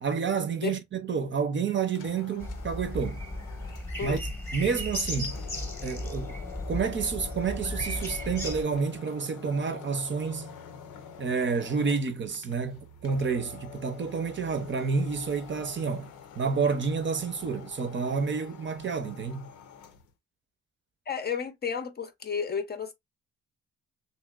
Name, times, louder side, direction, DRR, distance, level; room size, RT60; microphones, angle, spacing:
voice 1, 0.0-3.2 4.0-4.2 4.5-5.4 5.8-6.4 6.7-10.6 11.2-16.1 16.4-19.5, right 5 dB, 40° right, 0.7 m, -29 dB
sound 1, 1.8-20.1, left 6 dB, 90° left, 0.7 m, -47 dB
sound 2, 2.4-8.6, left 1 dB, 10° left, 0.9 m, -35 dB
voice 2, 21.1-22.9, left 6 dB, 35° left, 0.6 m, -32 dB
3.1 x 2.9 x 2.3 m
cardioid pair, 90°, 30 cm